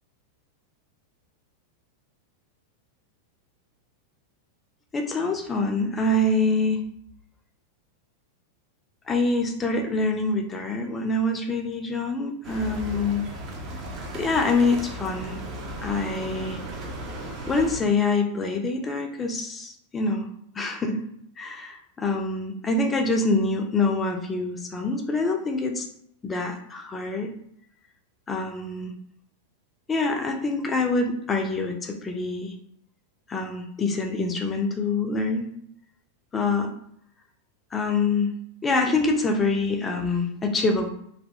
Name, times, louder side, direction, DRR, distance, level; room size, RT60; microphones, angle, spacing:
voice 1, 4.9-6.8 9.1-13.3 14.1-15.4 15.8-16.6 17.5-20.3 20.5-21.0 21.4-25.9 26.2-27.3 28.3-28.9 29.9-32.5 33.3-35.5 36.3-36.7 37.7-38.3 38.6-40.9, left 3 dB, 20° left, 3 dB, 0.4 m, -25 dB
sound 1, 12.4-17.8, right 1 dB, 35° right, 0.6 m, -36 dB
2.5 x 2.1 x 2.6 m, 0.71 s
figure-of-eight pair, 90°, 0 cm